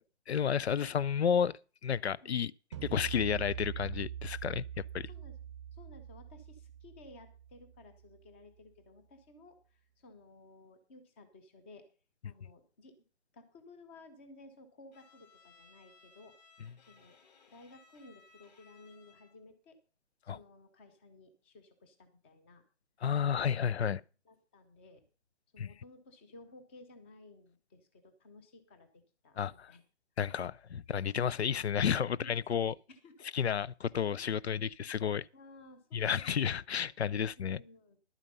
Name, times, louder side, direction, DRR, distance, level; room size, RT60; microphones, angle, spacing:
voice 1, 0.3-1.5 1.8-2.5 2.8-5.1 20.3-20.4 23.0-24.0 25.6-25.7 29.4-29.7 30.2-32.7 33.3-35.3 35.9-37.6, left 8 dB, 70° left, 0.5 m, -31 dB
sound 1, 2.7-8.1, right 10 dB, 25° right, 0.7 m, -43 dB
voice 2, 5.7-11.9 12.2-13.0 13.3-16.3 16.9-17.2 17.5-19.8 20.2-22.6 24.3-25.0 25.5-28.9 29.2-29.4 29.7-29.8 32.0-33.1 35.3-36.9 37.4-38.0, left 2 dB, 10° left, 0.7 m, -56 dB
Bowed string instrument, 14.9-19.5, left 5 dB, 35° left, 2.4 m, -62 dB
11.0 x 9.1 x 5.4 m
figure-of-eight pair, 150°, 35 cm